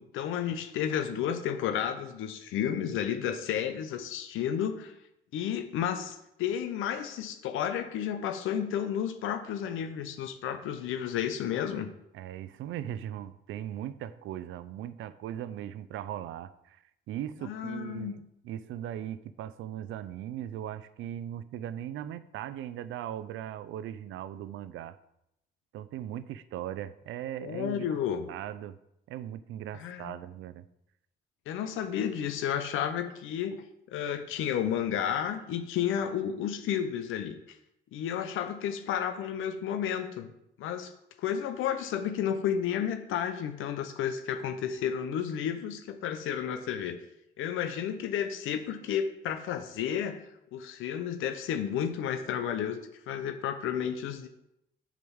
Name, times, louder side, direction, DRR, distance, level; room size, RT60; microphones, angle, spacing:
voice 1, 0.0-4.9 5.3-11.9 17.4-18.1 27.4-28.3 29.7-30.1 31.5-33.6 33.9-37.6 37.9-40.3 40.6-40.9 41.2-47.0 47.4-50.2 50.5-52.8 53.1-54.3, left 9 dB, 85° left, 8 dB, 0.7 m, -32 dB
voice 2, 12.1-25.0 25.7-28.0 28.3-28.8 29.1-30.7, right 11 dB, 85° right, 15 dB, 0.5 m, -39 dB
6.7 x 5.1 x 7.1 m, 0.81 s
cardioid pair, 90°, 20 cm